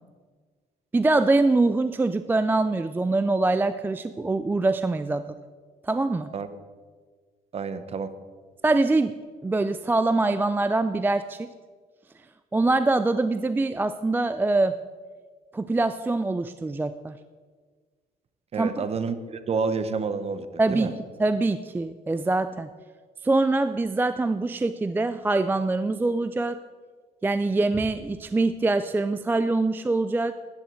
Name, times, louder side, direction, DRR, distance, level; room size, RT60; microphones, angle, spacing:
voice 1, 0.9-5.2 5.8-6.3 8.6-9.1 9.4-11.5 12.5-14.8 15.5-17.1 18.6-18.9 20.6-22.7 23.2-26.6 27.2-30.3, right 2 dB, 10° right, 12 dB, 0.3 m, -24 dB
voice 2, 7.5-8.1 18.5-20.9, right 5 dB, 35° right, 11 dB, 0.9 m, -29 dB
13.5 x 10.5 x 4.6 m, 1.5 s
cardioid pair, 110°, 17 cm